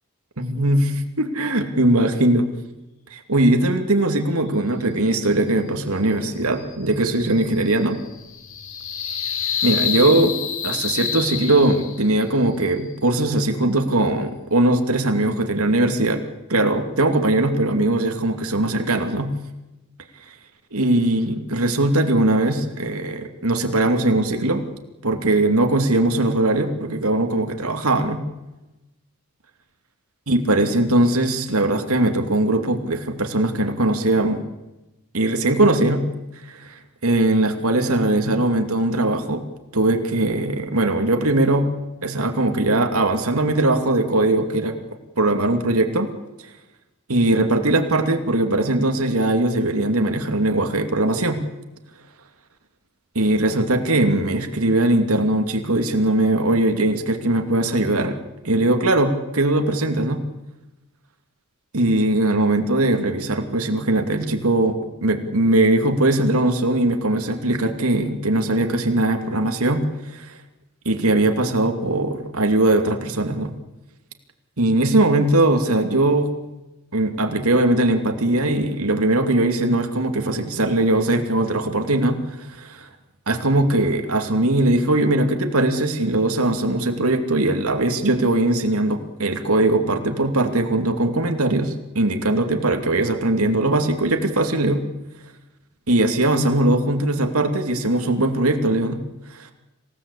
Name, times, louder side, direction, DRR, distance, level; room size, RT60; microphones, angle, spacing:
voice 1, 0.4-2.5 3.1-8.0 9.6-10.3 10.6-16.2 16.5-19.3 20.7-24.6 25.0-28.2 30.3-34.4 35.1-36.0 36.5-36.7 37.0-39.4 39.7-41.7 42.0-44.8 45.2-46.1 47.1-51.4 53.1-58.1 58.4-60.2 61.7-69.8 70.1-70.3 70.8-73.5 74.6-76.3 76.9-82.2 82.6-82.9 83.3-94.8 95.9-99.0 99.4-99.5, right 2 dB, 85° right, 5 dB, 2.6 m, -20 dB
sound 1, 6.2-12.2, left 7 dB, 65° left, 3.2 m, -28 dB
26.5 x 17.0 x 8.5 m, 1.0 s
head